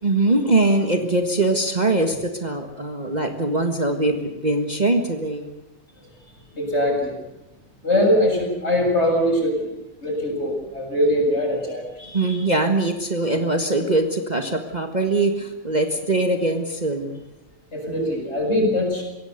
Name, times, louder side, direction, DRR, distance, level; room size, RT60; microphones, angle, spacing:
voice 1, 0.0-5.5 12.1-17.2, right 2 dB, 30° right, 4 dB, 1.7 m, -22 dB
voice 2, 6.5-7.1 7.8-9.7 10.0-12.4 17.7-19.0, left 1 dB, 50° left, 1 dB, 7.5 m, -22 dB
24.0 x 17.5 x 8.1 m, 0.96 s
omnidirectional pair, 1.5 m